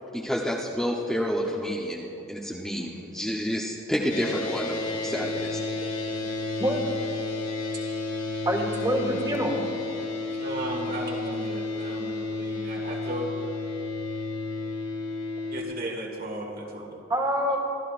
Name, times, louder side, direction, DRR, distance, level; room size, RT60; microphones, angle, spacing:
voice 1, 0.1-4.8 5.0-5.6, equal, ahead, -4 dB, 0.8 m, -29 dB
sound 1, 4.1-15.6, left 3 dB, 65° left, 1.9 m, -32 dB
voice 2, 5.7-6.6 10.3-13.6 15.5-17.1, right 1 dB, 45° right, 1 dB, 1.8 m, -36 dB
voice 3, 8.4-9.6 17.1-17.6, equal, 20° right, 0 dB, 1.7 m, -25 dB
26.5 x 13.0 x 2.5 m, 2.9 s
head